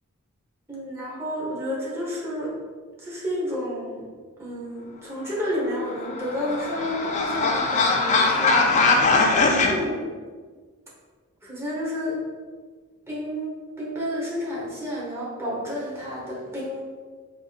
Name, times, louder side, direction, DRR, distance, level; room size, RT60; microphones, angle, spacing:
voice 1, 0.7-2.5 3.0-4.1 4.4-8.9 9.7-10.1 11.4-12.2 13.1-16.8, equal, 10° right, -6 dB, 1.0 m, -30 dB
sound 1, 5.8-9.7, left 3 dB, 35° left, 0.4 m, -21 dB
4.7 x 2.8 x 2.4 m, 1.5 s
head